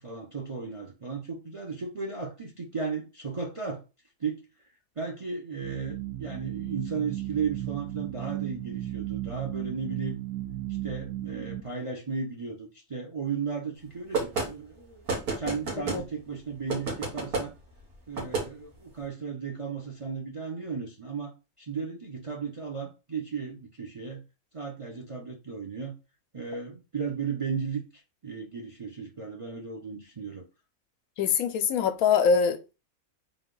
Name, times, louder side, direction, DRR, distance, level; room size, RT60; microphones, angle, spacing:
voice 1, 0.0-3.8 4.2-4.4 5.0-10.2 10.8-17.5 18.1-21.3 21.6-24.2 24.5-26.0 26.3-30.4, right 5 dB, 35° right, 0.6 m, -35 dB
sound 1, 5.6-11.6, right 14 dB, 70° right, 1.2 m, -35 dB
sound 2, 14.1-14.5 15.1-16.0 16.7-17.5 18.1-18.5, right 3 dB, 85° right, 2.0 m, -29 dB
voice 2, 31.2-32.7, left 6 dB, 80° left, 1.0 m, -24 dB
3.9 x 3.0 x 3.8 m
omnidirectional pair, 1.5 m